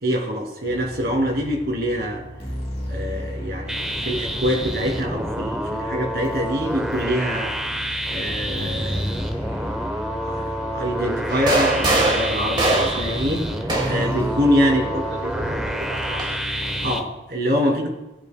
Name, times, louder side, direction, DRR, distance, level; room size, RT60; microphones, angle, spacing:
voice 1, 0.0-2.2 2.9-7.5 8.1-9.3 10.2-13.5 13.9-14.8 16.8-17.9, equal, 60° right, -1 dB, 2.7 m, -24 dB
sound 1, 0.6-16.9, equal, 35° left, 2.4 m, -33 dB
sound 2, 3.7-17.0, equal, 5° right, 0.7 m, -29 dB
sound 3, 11.3-14.2 15.3-16.4, right 2 dB, 25° right, 1.3 m, -23 dB
voice 2, 14.6-16.4 17.6-17.9, right 1 dB, 75° right, -2 dB, 3.4 m, -35 dB
18.0 x 7.9 x 2.2 m, 1.0 s
head